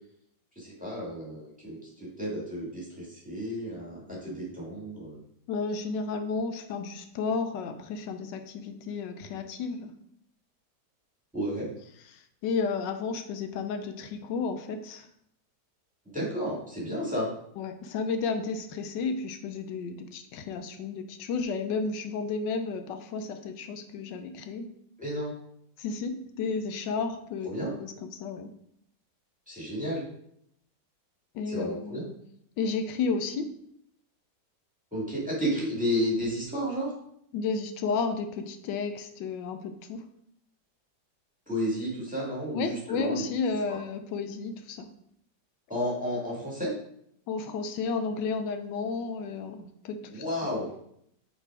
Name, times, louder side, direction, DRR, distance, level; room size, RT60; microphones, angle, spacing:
voice 1, 0.6-5.2 11.3-11.7 16.1-17.3 25.0-25.3 27.4-27.7 29.5-30.0 31.5-32.1 34.9-36.9 41.5-43.2 43.7-43.8 45.7-46.7 50.0-50.7, equal, 5° right, -5 dB, 1.8 m, -32 dB
voice 2, 5.5-9.9 12.1-15.1 17.6-24.7 25.8-27.5 27.8-28.5 31.3-32.0 32.6-33.5 37.3-40.0 42.5-44.9 47.3-50.2, left 4 dB, 85° left, 7 dB, 1.3 m, -32 dB
5.7 x 4.1 x 4.7 m, 0.71 s
omnidirectional pair, 1.9 m